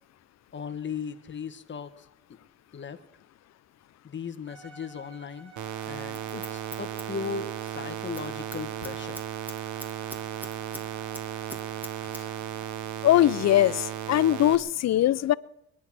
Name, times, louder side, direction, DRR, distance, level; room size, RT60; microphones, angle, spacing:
voice 1, 0.5-2.0 2.7-3.0 4.0-5.5 5.9-9.2, left 6 dB, 40° left, 1.3 m, -37 dB
Bowed string instrument, 4.4-12.8, right 3 dB, 50° right, 5.3 m, -53 dB
sound 1, 5.6-14.6, right 11 dB, 80° right, 1.1 m, -35 dB
Scissors, 5.8-7.8 8.0-8.3 8.5-10.8 11.1-12.2 12.5-12.6, equal, 5° right, 2.3 m, -42 dB
voice 2, 13.0-15.3, left 13 dB, 60° left, 0.6 m, -21 dB
21.5 x 10.0 x 6.1 m
cardioid pair, 90°, 30 cm